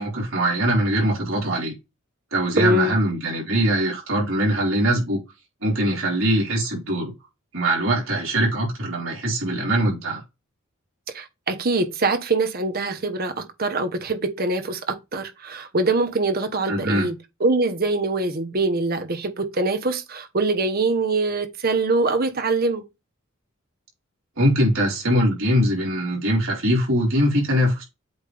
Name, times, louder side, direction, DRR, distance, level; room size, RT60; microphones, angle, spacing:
voice 1, 0.0-1.7 2.3-5.2 5.6-7.1 7.5-10.2 16.7-17.1 24.4-27.8, right 1 dB, 75° right, 3.9 m, -22 dB
voice 2, 2.6-2.9 11.1-22.8, right 2 dB, 45° right, 1.1 m, -23 dB
8.2 x 3.6 x 3.4 m
head